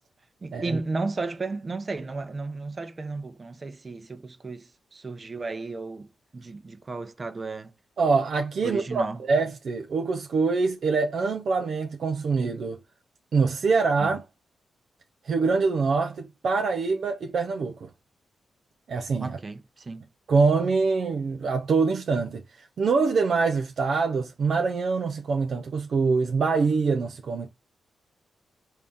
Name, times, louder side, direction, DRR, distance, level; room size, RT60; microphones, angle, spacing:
voice 1, 0.4-6.1 6.3-7.7 8.6-9.2 14.0-14.2 19.2-20.1, right 3 dB, 40° right, 0.8 m, -34 dB
voice 2, 8.0-12.8 13.3-14.2 15.3-17.9 18.9-19.4 20.3-22.4 22.8-27.5, right 4 dB, 65° right, 0.5 m, -24 dB
3.3 x 2.7 x 3.5 m
supercardioid pair, 45°, 0 cm